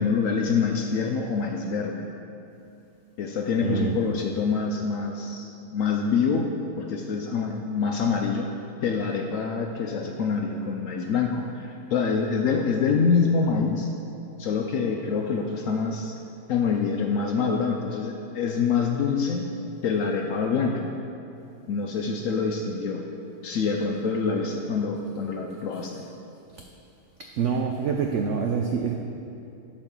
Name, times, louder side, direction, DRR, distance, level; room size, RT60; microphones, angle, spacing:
voice 1, 0.0-2.1 3.2-8.5 8.8-13.9 14.4-16.1 16.5-19.5 19.8-20.9 21.7-23.1 23.4-26.1, left 5 dB, 70° left, 2 dB, 0.8 m, -26 dB
voice 2, 3.6-3.9 27.4-28.9, right 6 dB, 80° right, 2 dB, 0.6 m, -26 dB
12.0 x 4.9 x 3.7 m, 2.7 s
omnidirectional pair, 1.8 m